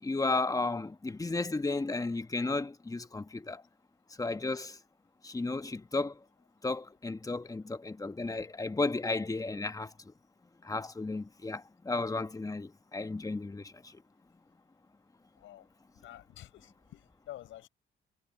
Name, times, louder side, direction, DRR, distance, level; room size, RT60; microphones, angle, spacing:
voice 1, 0.0-3.6 4.2-4.8 5.2-6.2 6.6-9.9 10.6-14.0, left 3 dB, 15° left, 1.3 m, -34 dB
voice 2, 16.0-17.7, left 13 dB, 85° left, 4.8 m, -49 dB
cardioid pair, 90°, 20 cm